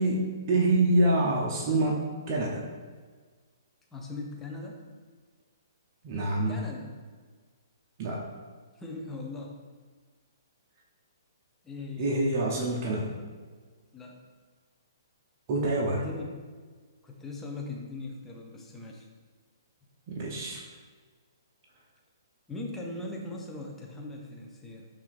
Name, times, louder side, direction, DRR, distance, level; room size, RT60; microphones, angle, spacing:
voice 1, 0.0-2.0 2.3-2.6 6.0-6.6 8.0-8.3 12.0-13.1 15.5-16.0 20.1-20.6, right 2 dB, 40° right, -3 dB, 0.6 m, -26 dB
voice 2, 3.9-4.9 6.5-6.9 8.8-9.6 11.6-12.1 13.9-14.2 15.9-16.5 17.0-19.1 22.5-24.9, left 2 dB, 10° left, 0 dB, 0.6 m, -40 dB
5.6 x 2.5 x 2.5 m, 1.5 s
hypercardioid pair, 135°, 2 cm